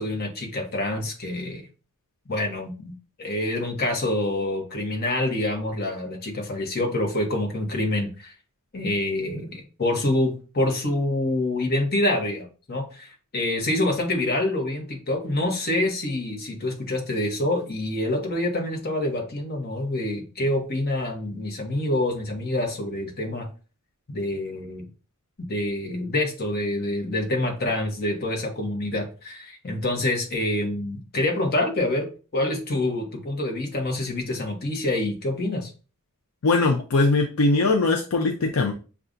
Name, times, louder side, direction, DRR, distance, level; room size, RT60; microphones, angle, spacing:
voice 1, 0.0-1.7 2.3-8.3 8.7-23.5 24.1-24.9 25.4-35.7, left 1 dB, 45° left, 2 dB, 1.0 m, -26 dB
voice 2, 36.4-38.7, left 3 dB, 70° left, 2 dB, 0.5 m, -21 dB
6.6 x 2.4 x 2.5 m, 0.35 s
head